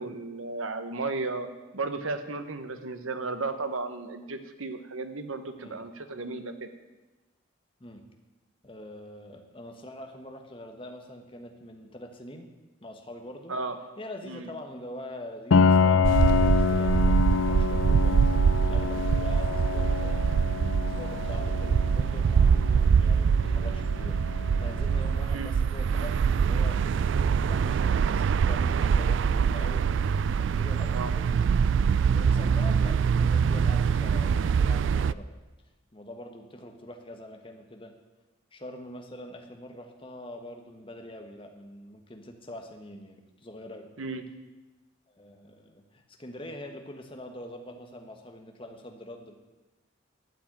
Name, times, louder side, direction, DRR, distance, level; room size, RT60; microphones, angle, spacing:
voice 1, 0.0-1.5 1.7-6.7 13.5-13.8 14.2-14.5 25.3-25.6 30.9-31.1 44.0-44.2, right 3 dB, 85° right, 9 dB, 1.1 m, -34 dB
voice 2, 8.6-12.5 12.8-13.5 14.0-20.2 20.8-26.8 27.4-30.1 30.4-31.6 32.0-35.3 35.9-37.9 38.5-43.9 45.1-49.3, left 1 dB, 25° left, 4 dB, 1.2 m, -44 dB
Piano, 15.5-25.1, left 5 dB, 75° left, 0.4 m, -27 dB
sound 1, 16.0-35.1, right 6 dB, 65° right, 0.3 m, -24 dB
12.5 x 5.9 x 9.0 m, 1.1 s
head